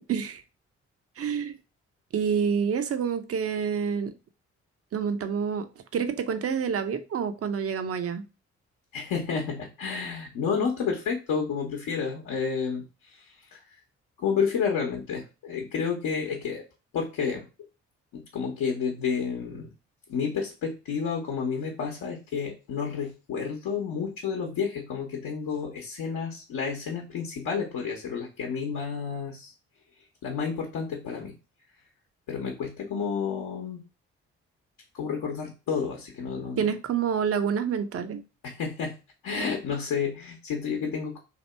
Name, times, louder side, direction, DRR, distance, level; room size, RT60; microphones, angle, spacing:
voice 1, 0.1-0.4 1.2-1.5 2.1-4.1 4.9-5.7 5.9-8.2 36.6-38.2, right 7 dB, 40° right, 0.6 m, -27 dB
voice 2, 8.9-13.6 14.2-16.6 16.9-17.5 18.1-19.7 20.1-29.5 30.2-31.3 32.3-33.8 34.9-36.7 38.4-39.0 39.2-41.2, left 6 dB, 65° left, 1.0 m, -30 dB
2.9 x 2.8 x 4.2 m
hypercardioid pair, 40°, 35 cm